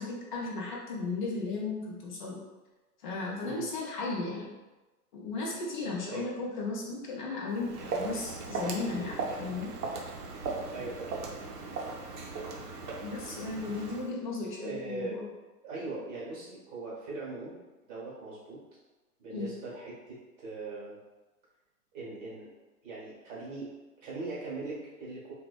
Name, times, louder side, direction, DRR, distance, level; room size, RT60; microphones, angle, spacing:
voice 1, 0.0-2.4 3.0-4.6 5.1-9.7 13.0-15.3 19.3-19.5, left 3 dB, 35° left, -3 dB, 0.4 m, -35 dB
Walk footsteps, 7.5-14.1, right 4 dB, 80° right, 0.7 m, -37 dB
voice 2, 10.7-11.1 14.6-15.2 15.6-17.6 17.8-18.6 19.2-21.0 21.9-22.5 22.8-23.7 24.0-25.3, right 3 dB, 25° right, -6 dB, 0.9 m, -40 dB
2.5 x 2.2 x 2.2 m, 1.1 s
hypercardioid pair, 145°, 46 cm